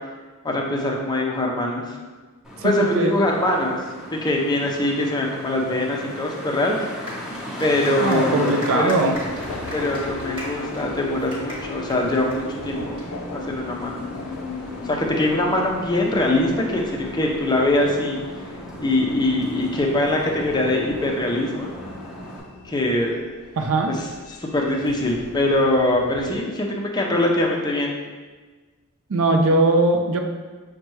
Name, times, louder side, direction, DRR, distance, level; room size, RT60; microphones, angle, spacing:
voice 1, 0.4-1.8 2.6-3.8 4.1-6.9 7.6-9.0 9.7-13.0 13.3-14.0 14.8-18.2 18.8-21.7 22.6-23.3 23.9-24.1 24.4-28.0, left 1 dB, 20° left, -1 dB, 0.5 m, -22 dB
Traffic noise roadway noise, 2.4-22.4, left 1 dB, 5° right, 0.9 m, -37 dB
voice 2, 2.6-3.1 8.0-9.2 23.6-23.9 29.1-30.2, right 2 dB, 65° right, 4 dB, 0.5 m, -20 dB
sound 1, 7.1-13.0, equal, 25° right, 1.2 m, -38 dB
Subway metro underground, 9.1-26.4, left 3 dB, 80° left, 0.4 m, -38 dB
6.4 x 2.2 x 3.1 m, 1.4 s
head